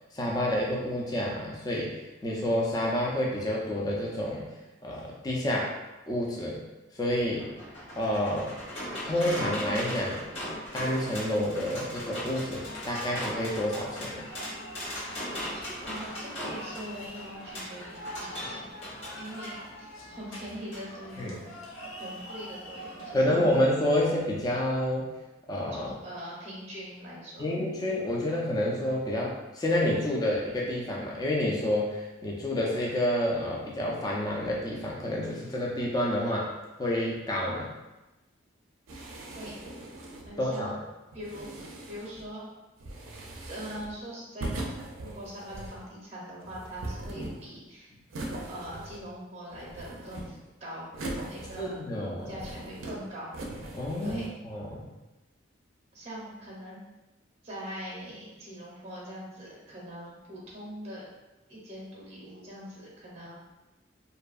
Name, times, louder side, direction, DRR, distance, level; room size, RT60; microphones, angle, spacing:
voice 1, 0.1-4.4 4.8-5.7 6.1-6.6 6.9-7.5 8.0-8.6 9.1-10.2 10.7-14.2 21.2-21.4 23.1-25.1 25.5-25.9 27.4-36.5 36.8-37.7 40.4-40.8 51.6-52.3 53.7-54.9, left 1 dB, 20° left, -3 dB, 0.3 m, -29 dB
sound 1, 7.2-19.6 20.7-20.8 21.2-21.3, equal, 75° left, 1.1 m, -38 dB
sound 2, 12.5-23.7, equal, 90° left, 0.6 m, -44 dB
voice 2, 15.8-18.7 19.2-21.4 22.0-23.4 25.7-27.5 39.4-39.5 40.2-40.7 41.1-42.5 43.5-44.7 45.0-47.9 48.5-50.9 51.3-51.7 52.3-53.3 54.0-54.3 55.9-56.8 57.4-61.0 61.5-63.3, equal, 30° right, -6 dB, 0.7 m, -42 dB
sound 3, 38.9-40.4 41.1-42.3 42.8-44.0 44.4-45.9 46.4-47.6 48.1-49.2 49.5-50.5 50.9-51.9 52.2-53.0 53.3-54.3, right 1 dB, 85° right, 0.4 m, -40 dB
2.6 x 2.3 x 2.3 m, 1.0 s
head